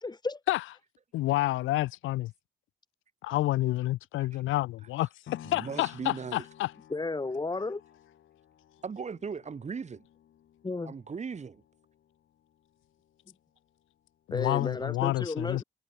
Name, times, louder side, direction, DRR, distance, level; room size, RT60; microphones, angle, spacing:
voice 1, 0.0-0.4 6.9-7.8 10.6-10.9 14.3-15.6, left 3 dB, 20° left, 2.4 m, -33 dB
voice 2, 1.1-2.3 3.2-5.1 5.5-6.7 14.3-15.6, left 17 dB, 85° left, 0.6 m, -29 dB
sound 1, 5.3-13.4 13.8-13.9, left 11 dB, 70° left, 4.1 m, -53 dB
voice 3, 5.4-6.5 8.8-10.1 10.8-11.6, right 5 dB, 35° right, 1.7 m, -38 dB
cardioid pair, 90°, 20 cm